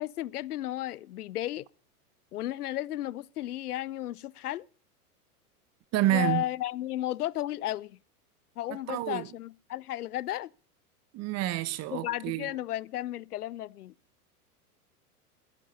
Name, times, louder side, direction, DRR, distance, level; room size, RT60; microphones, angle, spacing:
voice 1, 0.0-1.7 2.3-4.7 6.1-8.0 8.6-10.5 11.9-13.9, left 14 dB, 75° left, 0.7 m, -34 dB
voice 2, 5.9-6.4 8.7-9.3 11.1-12.5, right 14 dB, 35° right, 1.2 m, -29 dB
21.5 x 9.9 x 5.5 m
hypercardioid pair, 95°, 46 cm